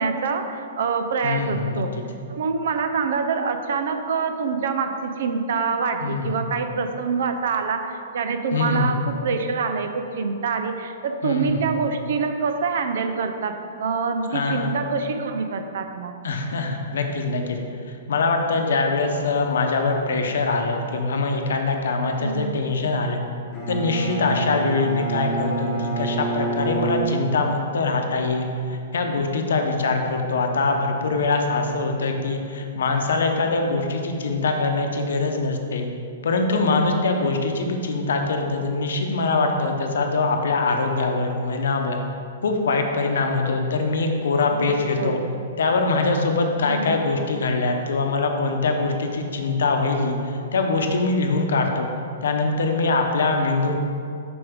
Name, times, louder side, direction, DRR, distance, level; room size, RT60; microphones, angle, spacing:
voice 1, 0.0-1.9 2.3-16.2 22.2-22.6 24.9-25.0 37.2-37.3 44.5-45.3 46.7-47.1, right 5 dB, 65° right, 7 dB, 0.5 m, -26 dB
voice 2, 1.2-1.8 6.0-6.4 8.5-9.0 11.2-11.6 14.3-14.8 16.2-17.6 17.9-23.2 23.7-35.9 36.2-42.0 42.4-45.2 45.6-51.9 52.2-53.8, left 3 dB, 85° left, 4 dB, 0.8 m, -23 dB
Bowed string instrument, 23.5-27.7, right 3 dB, 15° left, 1.2 m, -27 dB
6.8 x 5.2 x 3.6 m, 2.5 s
hypercardioid pair, 160°, 0 cm